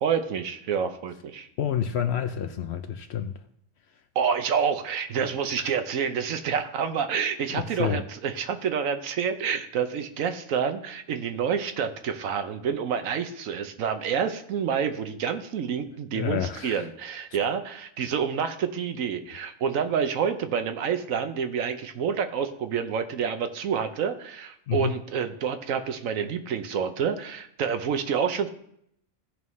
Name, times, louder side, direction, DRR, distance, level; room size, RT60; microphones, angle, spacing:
voice 1, 0.0-1.5 4.1-28.5, right 7 dB, 75° right, 1.1 m, -28 dB
voice 2, 1.6-3.3 5.6-5.7 7.5-8.0 16.1-16.9 24.7-25.0, left 8 dB, 65° left, 0.7 m, -29 dB
16.0 x 5.4 x 3.1 m
omnidirectional pair, 1.4 m